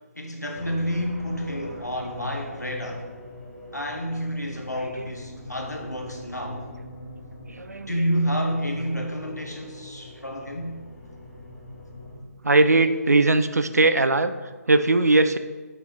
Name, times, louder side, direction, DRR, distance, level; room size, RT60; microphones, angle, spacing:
voice 1, 0.1-3.1 3.7-6.6 7.9-10.8, equal, 90° left, 2 dB, 1.2 m, -29 dB
sound 1, 0.5-12.2, left 1 dB, 10° left, 1.3 m, -42 dB
voice 2, 4.7-5.1 7.5-8.0 12.4-14.3 14.7-15.4, right 2 dB, 70° right, 11 dB, 0.5 m, -20 dB
7.0 x 4.4 x 4.0 m, 1.3 s
figure-of-eight pair, 145°, 9 cm